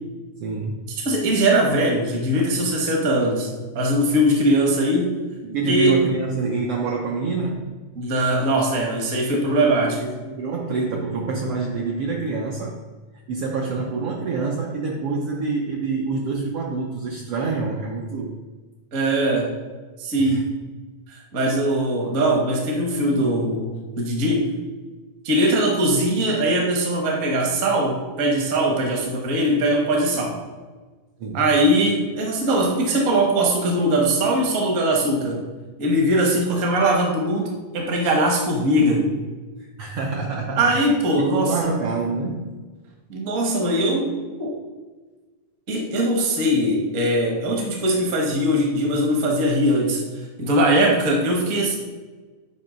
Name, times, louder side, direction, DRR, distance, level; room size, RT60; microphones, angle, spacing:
voice 1, 0.4-0.9 5.4-7.7 9.6-12.8 13.3-18.3 20.2-20.4 31.2-31.4 39.6-40.7 41.1-42.6, right 4 dB, 90° right, -1 dB, 1.3 m, -26 dB
voice 2, 1.0-3.5 3.7-5.2 5.7-6.0 7.9-10.0 18.9-19.5 20.0-20.5 21.1-24.5 25.2-30.4 31.3-35.4 35.8-39.1 40.6-41.8 43.1-44.1 44.4-44.6 45.7-50.0 50.4-51.8, right 1 dB, 60° right, 0 dB, 0.8 m, -21 dB
8.9 x 3.1 x 5.0 m, 1.3 s
omnidirectional pair, 3.5 m